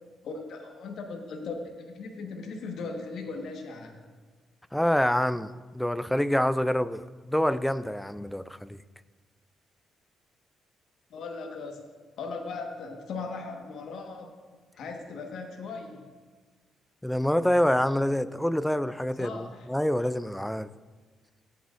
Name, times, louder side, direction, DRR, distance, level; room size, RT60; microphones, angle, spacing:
voice 1, 0.2-4.1 11.1-11.9 12.2-14.3 14.8-16.1 19.2-19.7, left 4 dB, 70° left, 2 dB, 1.3 m, -38 dB
voice 2, 4.7-5.5 5.7-8.8 17.0-20.7, equal, 5° left, 15 dB, 0.3 m, -26 dB
14.5 x 8.8 x 2.5 m, 1.4 s
cardioid pair, 90°, 0 cm